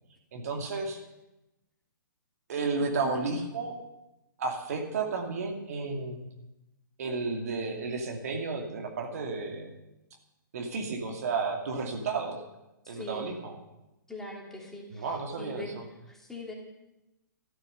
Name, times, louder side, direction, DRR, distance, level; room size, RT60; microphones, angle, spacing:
voice 1, 0.3-1.0 2.5-3.7 4.4-6.2 7.0-9.7 10.5-12.4 12.9-13.6 14.9-15.6, right 4 dB, 50° right, 2 dB, 2.4 m, -32 dB
voice 2, 12.8-13.3 14.1-15.7 16.1-16.5, left 2 dB, 5° left, -2 dB, 2.9 m, -42 dB
14.0 x 12.5 x 6.8 m, 0.96 s
figure-of-eight pair, 125°, 11 cm